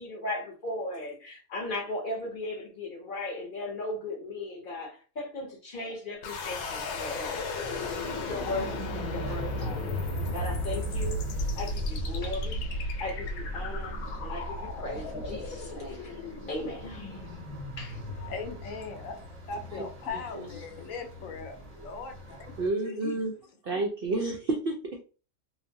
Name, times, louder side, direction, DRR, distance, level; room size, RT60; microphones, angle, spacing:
voice 1, 0.0-10.0 10.2-12.6 13.0-17.3 17.8-18.0, left 2 dB, 45° left, 0.7 m, -37 dB
sound 1, 6.2-19.2, left 1 dB, 90° left, 1.1 m, -34 dB
sound 2, 7.6-22.7, right 1 dB, 35° right, 0.6 m, -43 dB
voice 2, 18.0-22.5 22.8-23.2, left 4 dB, 70° left, 0.9 m, -39 dB
voice 3, 20.1-20.5 22.6-23.3 23.6-25.0, right 2 dB, 75° right, 0.5 m, -30 dB
3.1 x 2.0 x 2.6 m
omnidirectional pair, 1.5 m